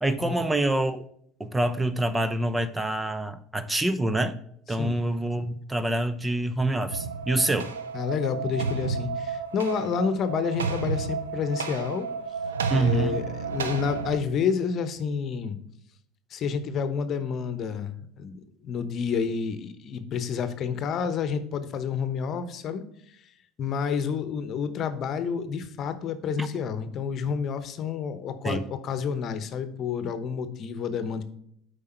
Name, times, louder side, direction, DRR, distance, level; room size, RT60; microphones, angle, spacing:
voice 1, 0.0-1.1 1.4-4.4 4.7-7.7 12.7-13.2 26.4-26.5 28.4-28.7, right 1 dB, 15° right, 0.7 m, -26 dB
sound 1, 6.9-14.2, right 5 dB, 90° right, 0.8 m, -31 dB
voice 2, 7.9-12.1 12.7-15.6 16.3-22.8 23.6-31.2, left 6 dB, 50° left, 0.9 m, -29 dB
8.5 x 5.2 x 4.4 m
hypercardioid pair, 70°, 0 cm